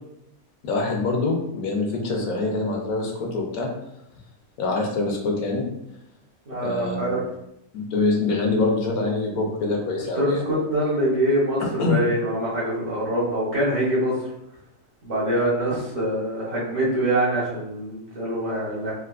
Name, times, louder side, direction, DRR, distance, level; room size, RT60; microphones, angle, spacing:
voice 1, 0.6-3.7 4.6-5.6 6.6-7.2 7.7-10.4 11.6-12.0, left 3 dB, 75° left, 1 dB, 1.1 m, -25 dB
voice 2, 6.5-7.2 10.1-14.1 15.0-18.9, right 1 dB, 40° right, -9 dB, 0.5 m, -24 dB
3.6 x 2.6 x 2.3 m, 0.82 s
omnidirectional pair, 1.6 m